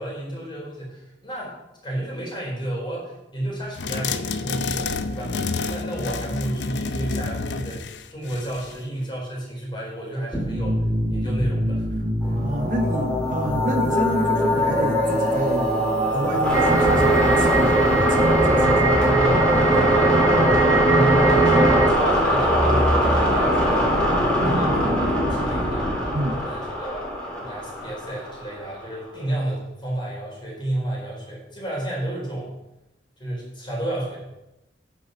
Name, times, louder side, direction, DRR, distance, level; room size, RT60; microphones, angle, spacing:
voice 1, 0.0-1.5 1.8-7.8 8.1-10.8 11.1-11.9 12.2-12.5 19.2-23.9 24.2-25.9 26.3-27.1 27.4-32.5 33.2-34.4, right 1 dB, 30° left, -3 dB, 4.5 m, -31 dB
sound 1, 3.8-8.8, left 4 dB, 80° left, 0.6 m, -29 dB
sound 2, 10.3-28.8, equal, 5° left, 3.5 m, -22 dB
voice 2, 12.3-15.7 16.1-19.0 26.1-26.4, right 1 dB, 45° right, 5 dB, 0.8 m, -29 dB
sound 3, 16.5-21.9, right 3 dB, 15° right, 0.9 m, -20 dB
10.0 x 6.8 x 6.0 m, 0.94 s
head